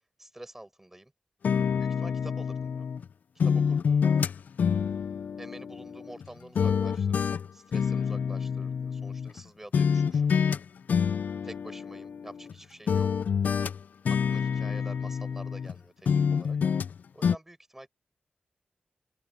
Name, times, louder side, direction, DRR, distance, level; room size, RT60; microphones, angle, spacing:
voice 1, 0.2-1.1 1.8-2.9 3.4-3.9 5.4-10.2 11.4-13.3 14.1-16.6 17.1-17.9, right 1 dB, 10° right, 6.2 m, -47 dB
sound 1, 1.4-3.0 3.4-6.3 6.6-9.4 9.7-10.6 10.9-12.5 12.9-15.8 16.1-16.9 17.2-17.4, left 6 dB, 80° left, 0.3 m, -27 dB
open air
wide cardioid pair, 140°, 3 cm